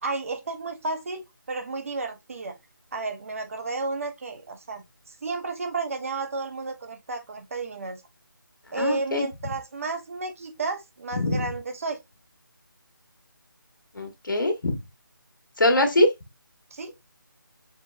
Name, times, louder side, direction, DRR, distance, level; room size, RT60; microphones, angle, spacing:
voice 1, 0.0-2.6 2.9-4.8 5.2-8.0 8.7-12.0 16.7-16.9, right 3 dB, 40° right, 1.1 m, -32 dB
voice 2, 8.8-9.2 11.2-11.5 14.0-14.7 15.6-16.1, left 1 dB, 65° left, 1.7 m, -22 dB
6.5 x 3.2 x 2.5 m
figure-of-eight pair, 160°, 12 cm